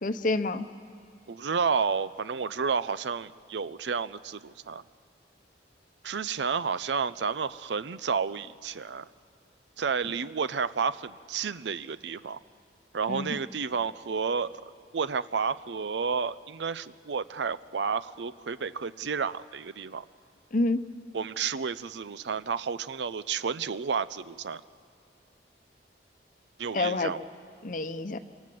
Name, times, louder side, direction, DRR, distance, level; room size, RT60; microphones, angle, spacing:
voice 1, 0.0-0.7 13.1-13.4 20.5-20.8 26.7-27.1 27.6-28.2, left 2 dB, 45° left, 10 dB, 0.9 m, -28 dB
voice 2, 1.3-4.8 6.0-9.1 9.8-12.4 12.9-14.5 14.9-20.0 21.1-24.6 26.6-27.2, right 5 dB, 80° right, 16 dB, 0.6 m, -31 dB
26.0 x 25.0 x 7.7 m, 2.5 s
head